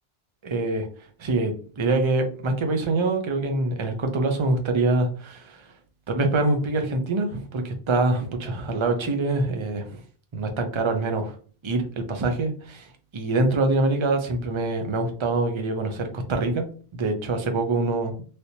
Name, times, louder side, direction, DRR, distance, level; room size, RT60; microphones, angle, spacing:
voice 1, 0.4-0.9 1.2-5.7 6.1-10.0 10.3-11.3 11.6-16.6 16.9-18.2, right 2 dB, 35° right, 5 dB, 0.5 m, -25 dB
3.3 x 2.8 x 2.7 m, 0.40 s
omnidirectional pair, 1.0 m